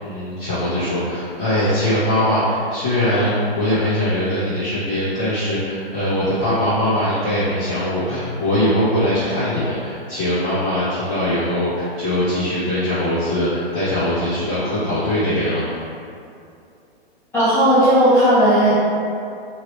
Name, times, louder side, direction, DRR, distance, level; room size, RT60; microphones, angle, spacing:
voice 1, 0.0-15.8, left 1 dB, 40° left, -15 dB, 1.3 m, -21 dB
voice 2, 17.3-18.7, equal, 10° left, -14 dB, 0.5 m, -14 dB
3.0 x 2.7 x 3.1 m, 2.5 s
hypercardioid pair, 135°, 31 cm